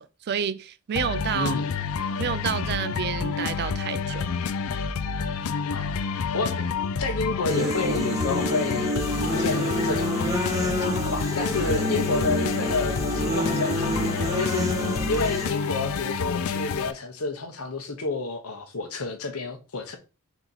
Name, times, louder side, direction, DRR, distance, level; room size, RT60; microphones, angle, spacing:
voice 1, 0.0-1.6 2.2-4.3, right 8 dB, 50° right, 0.3 m, -29 dB
sound 1, 0.9-16.9, left 5 dB, 70° left, 0.4 m, -29 dB
voice 2, 1.3-1.7 5.7-6.7 7.0-8.9 9.2-10.2 10.8-20.0, left 3 dB, 85° left, 0.9 m, -30 dB
sound 2, 7.5-15.5, equal, 15° right, 0.8 m, -28 dB
4.0 x 2.9 x 3.9 m
head